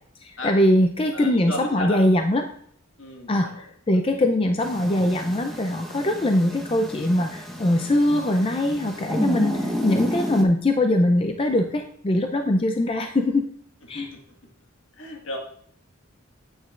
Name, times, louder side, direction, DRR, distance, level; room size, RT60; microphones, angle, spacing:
voice 1, 0.2-2.4 3.3-13.5 13.9-14.1, left 1 dB, 25° left, 5 dB, 0.4 m, -22 dB
voice 2, 1.1-2.0 3.0-3.6 3.9-4.3 13.9-14.2 15.0-15.4, left 1 dB, 65° left, 1 dB, 1.7 m, -34 dB
sound 1, 4.6-10.4, equal, ahead, 1.0 m, -30 dB
9.3 x 8.8 x 2.4 m, 0.66 s
head